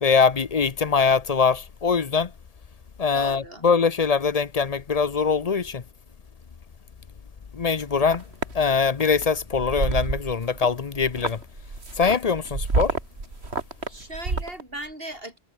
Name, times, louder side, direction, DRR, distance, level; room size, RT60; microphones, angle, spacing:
voice 1, 0.0-2.3 3.0-5.8 7.5-8.2 8.5-11.4 12.0-12.9, left 5 dB, 40° left, 0.8 m, -22 dB
voice 2, 3.1-3.7 13.9-15.4, right 1 dB, 65° right, 8.1 m, -37 dB
sound 1, 7.8-8.5 9.0-9.2 9.5-10.7 10.9-14.6, right 3 dB, 85° right, 2.8 m, -28 dB
omnidirectional pair, 1.1 m